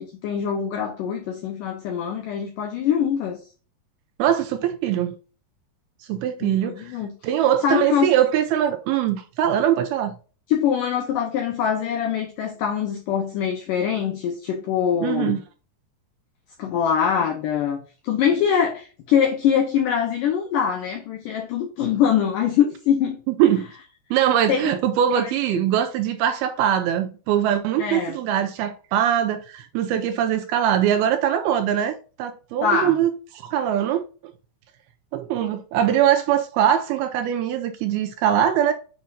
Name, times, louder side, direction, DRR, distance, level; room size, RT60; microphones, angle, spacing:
voice 1, 0.0-3.4 6.4-7.1 7.6-8.1 10.5-15.4 16.6-23.2 24.5-24.7 25.2-25.6 27.8-28.2 32.6-33.0, left 8 dB, 85° left, 1.9 m, -23 dB
voice 2, 4.2-5.2 6.1-7.0 7.2-10.2 15.0-15.4 23.3-23.7 24.1-34.3 35.1-38.7, right 10 dB, 80° right, 2.3 m, -22 dB
7.9 x 5.7 x 2.5 m
omnidirectional pair, 4.9 m